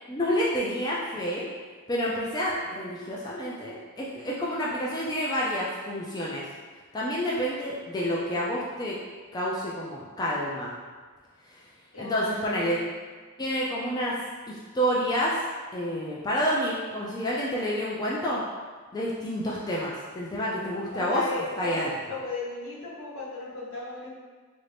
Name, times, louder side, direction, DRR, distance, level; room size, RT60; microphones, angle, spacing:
voice 1, 0.0-1.5 1.9-6.5 6.9-9.0 9.3-10.7 11.5-11.6 12.0-12.8 13.4-14.2 14.5-15.4 15.7-18.4 18.9-21.2 21.6-21.9, equal, 20° left, -6 dB, 0.4 m, -29 dB
voice 2, 11.9-12.9 20.9-24.1, left 3 dB, 70° left, -6 dB, 0.9 m, -35 dB
3.2 x 2.6 x 3.3 m, 1.4 s
head